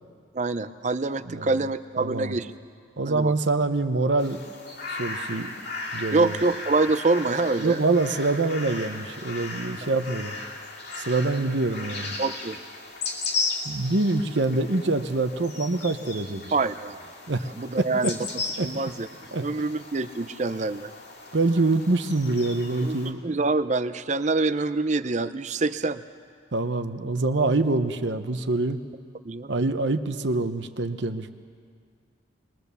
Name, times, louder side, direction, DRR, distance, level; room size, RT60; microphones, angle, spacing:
voice 1, 0.3-2.5 3.1-3.3 6.1-7.8 12.2-12.6 16.5-17.0 17.6-18.2 18.6-19.1 19.4-20.9 22.8-23.0 23.2-26.0 29.2-29.5, right 3 dB, 35° right, 13 dB, 0.6 m, -25 dB
voice 2, 2.0-2.3 3.0-4.4 4.9-5.5 5.9-6.3 7.6-10.4 11.0-12.1 13.6-16.5 17.3-17.5 17.8-18.1 18.6-18.7 19.3-19.4 21.3-23.2 26.5-28.8 29.5-31.3, right 2 dB, 65° right, 9 dB, 0.9 m, -25 dB
sound 1, 4.2-23.1, left 3 dB, 60° left, 2.4 m, -36 dB
22.0 x 21.5 x 6.9 m, 2.1 s
head